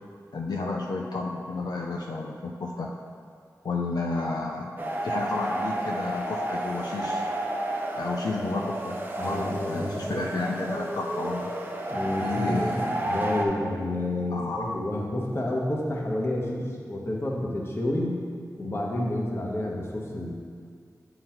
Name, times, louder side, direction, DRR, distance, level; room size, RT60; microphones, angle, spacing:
voice 1, 0.3-2.9 3.6-4.7 5.0-7.3 8.0-9.0 9.2-11.5 12.2-13.0 14.3-14.7, left 3 dB, 80° left, 0 dB, 0.5 m, -31 dB
sound 1, 4.8-13.5, right 1 dB, 30° right, 0.7 m, -31 dB
voice 2, 9.2-10.3 11.9-18.1 18.6-20.3, left 1 dB, 40° left, -2 dB, 1.1 m, -29 dB
7.8 x 3.9 x 4.4 m, 2.1 s
wide cardioid pair, 85°, 7 cm